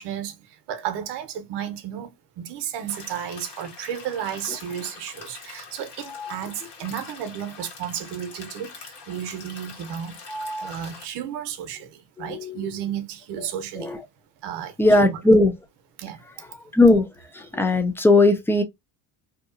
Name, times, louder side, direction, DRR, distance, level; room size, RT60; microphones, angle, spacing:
voice 1, 0.0-10.2 10.6-13.9 14.4-15.2 16.0-16.3, right 9 dB, 65° right, 0.8 m, -33 dB
sound 1, 2.9-11.1, left 5 dB, 65° left, 1.4 m, -44 dB
voice 2, 10.3-10.7 12.2-12.6 13.4-13.5 13.8-14.0 14.8-15.5 16.7-17.1 17.3-18.6, left 2 dB, 5° left, 0.4 m, -19 dB
2.8 x 2.3 x 2.5 m
supercardioid pair, 100°, 45 cm